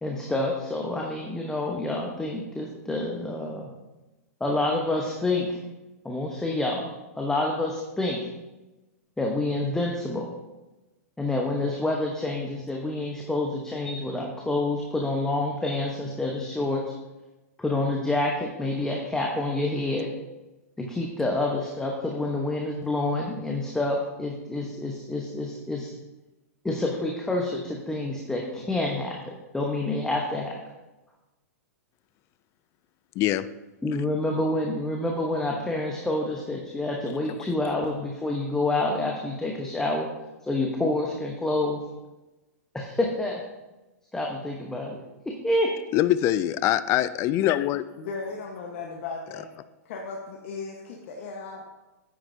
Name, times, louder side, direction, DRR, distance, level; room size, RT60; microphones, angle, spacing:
voice 1, 0.0-3.7 4.4-5.6 6.0-6.9 7.2-8.3 9.2-10.3 11.2-16.8 17.6-20.1 20.8-25.9 26.6-30.6 33.8-40.1 40.4-41.8 42.7-43.4 44.1-45.0 45.2-45.7, left 2 dB, 5° left, -1 dB, 1.1 m, -28 dB
voice 2, 33.2-33.5 45.9-47.8, left 13 dB, 30° left, 16 dB, 0.4 m, -23 dB
voice 3, 48.0-49.5 49.8-51.7, left 4 dB, 55° left, -1 dB, 1.3 m, -36 dB
9.7 x 8.9 x 2.8 m, 1.1 s
hypercardioid pair, 120°, 9 cm